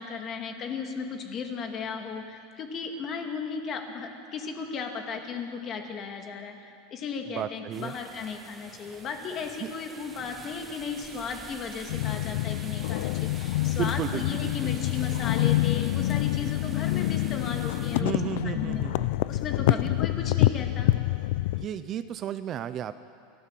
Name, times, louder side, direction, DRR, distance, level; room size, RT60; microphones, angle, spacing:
voice 1, 0.0-18.8 19.3-20.9, left 5 dB, 30° left, 4 dB, 2.3 m, -36 dB
voice 2, 7.3-7.9 9.6-9.7 13.6-14.7 18.0-19.3 19.7-19.9 21.5-22.9, right 10 dB, 30° right, 12 dB, 0.6 m, -34 dB
sound 1, 7.7-18.0, right 4 dB, 15° right, 1.2 m, -47 dB
sound 2, 11.9-21.7, left 17 dB, 70° left, 0.4 m, -27 dB
28.5 x 14.0 x 7.6 m, 2.4 s
supercardioid pair, 150°, 0 cm